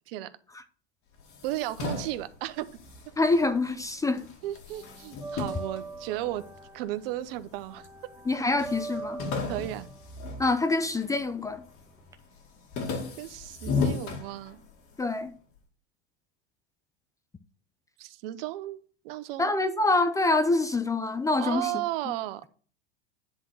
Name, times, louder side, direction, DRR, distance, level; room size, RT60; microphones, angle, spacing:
sound 1, 1.2-3.8 4.2-6.7 7.3-8.0 8.2-8.3 8.6-11.2 11.6-12.0 12.3-14.9, left 4 dB, 40° left, 2.4 m, -35 dB
voice 1, 1.4-2.7 4.4-6.4 6.7-7.9 9.5-9.9 13.2-14.6 18.0-18.8 19.0-19.5 21.4-22.5, right 15 dB, 60° right, 0.9 m, -34 dB
sound 2, 2.9-4.0 4.2-12.1, right 3 dB, 10° right, 0.9 m, -43 dB
voice 2, 3.2-4.2 8.3-9.2 10.4-11.6 15.0-15.3 19.4-21.7, left 2 dB, 10° left, 0.5 m, -25 dB
10.0 x 3.8 x 6.5 m
supercardioid pair, 120°, 32 cm